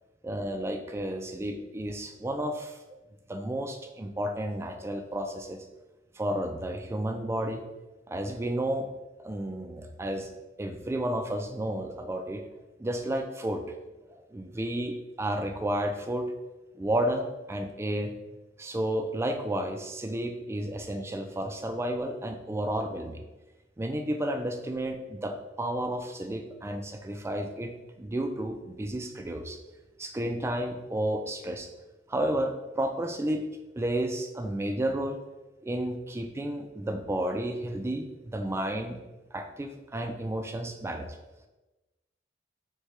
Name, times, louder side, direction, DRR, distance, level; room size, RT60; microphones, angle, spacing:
voice 1, 0.2-2.8 3.3-5.6 6.1-7.6 8.1-8.9 9.2-10.3 10.6-12.4 12.8-13.8 14.3-16.3 16.7-18.1 18.6-23.2 23.8-29.6 30.0-31.7 32.1-35.2 35.6-39.0 39.3-41.2, right 1 dB, 15° right, 5 dB, 0.3 m, -32 dB
6.4 x 2.2 x 3.1 m, 1.1 s
head